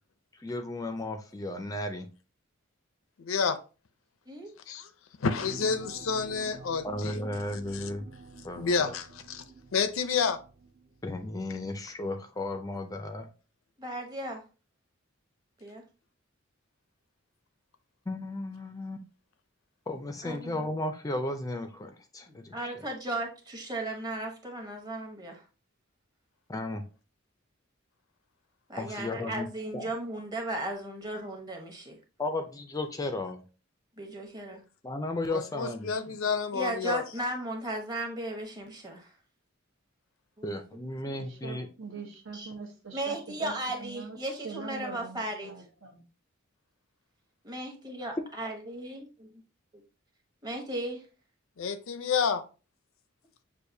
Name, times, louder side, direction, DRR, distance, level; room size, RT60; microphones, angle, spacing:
voice 1, 0.4-2.1 6.8-8.1 8.4-8.9 11.0-13.3 18.1-19.0 19.9-22.9 26.5-26.8 28.8-29.5 29.7-29.8 32.2-33.4 34.8-35.9 40.4-41.7, left 1 dB, 15° left, 0.4 m, -34 dB
voice 2, 3.2-3.6 4.7-4.9 5.2-7.2 7.7-7.9 8.5-9.4 9.7-10.4 35.3-37.0 51.6-52.4, left 5 dB, 75° left, 0.5 m, -29 dB
sound 1, 5.4-11.4 11.8-11.9, right 3 dB, 45° right, 0.5 m, -48 dB
voice 3, 13.8-14.4 15.6-15.8 20.2-20.7 22.3-25.4 28.7-32.0 34.0-34.6 36.5-39.1 40.4-40.5 41.1-41.3 42.0-42.1 42.3-42.5 42.9-45.5 47.4-49.0 50.4-51.0, right 1 dB, 20° right, 1.0 m, -36 dB
voice 4, 41.2-44.2 44.4-46.0, right 4 dB, 70° right, 1.0 m, -43 dB
6.4 x 2.6 x 2.6 m
head